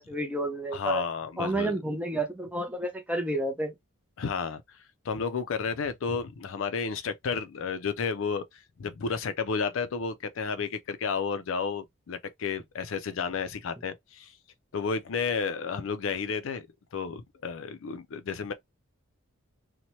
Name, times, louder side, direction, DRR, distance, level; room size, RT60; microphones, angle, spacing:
voice 1, 0.0-1.0 1.4-3.7, right 1 dB, 5° right, 0.5 m, -30 dB
voice 2, 0.7-1.7 4.2-4.6 5.0-14.3 14.7-16.7 16.9-18.5, left 5 dB, 70° left, 0.4 m, -32 dB
2.8 x 2.1 x 3.0 m
head